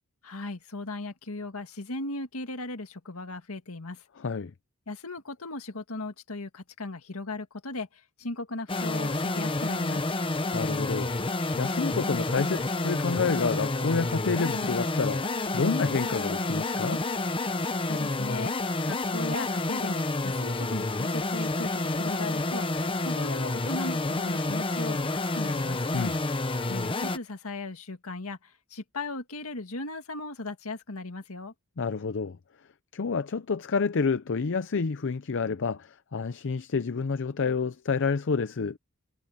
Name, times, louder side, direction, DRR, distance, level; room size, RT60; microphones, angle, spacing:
voice 1, 0.2-4.0 4.9-10.0 17.9-18.5 18.9-25.8 26.7-31.5, left 2 dB, 80° left, 1.9 m, -37 dB
voice 2, 4.2-4.5 10.5-11.1 11.6-17.0 25.9-26.2 31.8-32.4 32.9-38.8, left 5 dB, 60° left, 0.6 m, -29 dB
sound 1, 8.7-27.2, left 2 dB, 25° left, 1.0 m, -29 dB
head